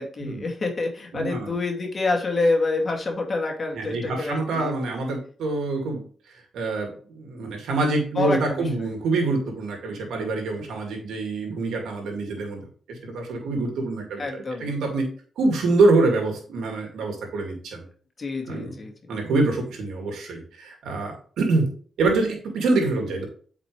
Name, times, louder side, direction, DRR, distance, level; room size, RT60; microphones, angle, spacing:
voice 1, 0.0-4.8 8.1-8.9 14.2-14.8 18.2-18.9, left 3 dB, 45° left, 1 dB, 2.3 m, -27 dB
voice 2, 1.1-1.5 3.7-6.0 6.5-12.6 12.9-15.1 15.4-17.8 18.5-18.7 19.1-21.7 22.0-23.3, right 3 dB, 85° right, 2 dB, 2.3 m, -25 dB
8.3 x 5.2 x 3.2 m, 0.43 s
cardioid pair, 65°, 0 cm